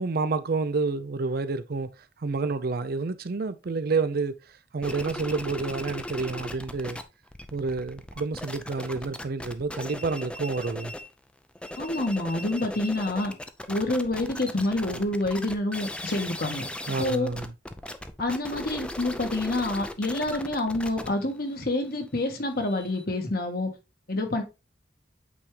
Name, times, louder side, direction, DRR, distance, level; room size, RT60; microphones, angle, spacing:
voice 1, 0.0-1.9 2.2-4.4 4.7-7.0 7.5-10.9 16.9-17.5, right 4 dB, 55° right, 0.5 m, -29 dB
sound 1, 4.8-7.0 7.3-11.1 11.5-23.0, left 1 dB, 5° left, 0.5 m, -38 dB
voice 2, 11.8-13.3 13.7-16.7 17.0-17.3 18.2-23.7 24.1-24.4, left 2 dB, 55° left, 1.6 m, -27 dB
8.3 x 3.6 x 3.2 m
head